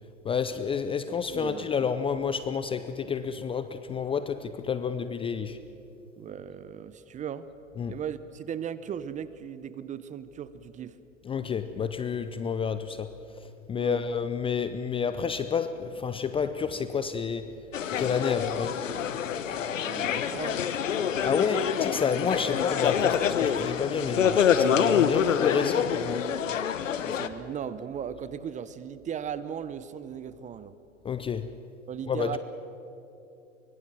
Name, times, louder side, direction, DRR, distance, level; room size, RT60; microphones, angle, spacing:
voice 1, 0.2-5.6 7.8-7.9 11.3-13.1 13.7-17.5 18.0-18.8 21.2-26.3 31.0-31.5 32.1-32.3, left 6 dB, 15° left, 12 dB, 0.6 m, -29 dB
voice 2, 1.2-1.7 6.2-7.5 7.9-11.0 13.7-14.1 19.8-20.6 27.0-30.7 31.9-32.4, right 8 dB, 20° right, 15 dB, 0.7 m, -37 dB
sound 1, 17.7-27.3, left 8 dB, 75° left, 1.2 m, -26 dB
24.0 x 23.0 x 6.2 m, 2.8 s
hypercardioid pair, 105°, 38 cm